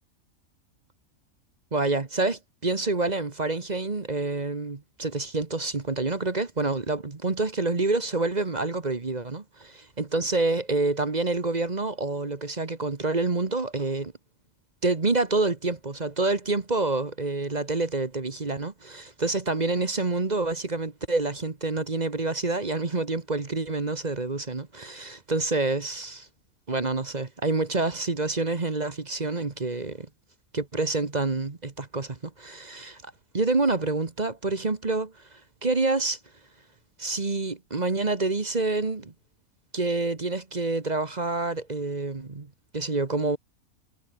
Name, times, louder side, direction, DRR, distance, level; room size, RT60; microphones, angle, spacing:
voice 1, 1.7-14.1 14.8-26.3 26.7-30.1 30.5-36.2 37.0-39.1 39.7-43.4, right 3 dB, 30° right, 1.4 m, -27 dB
omnidirectional pair, 1.5 m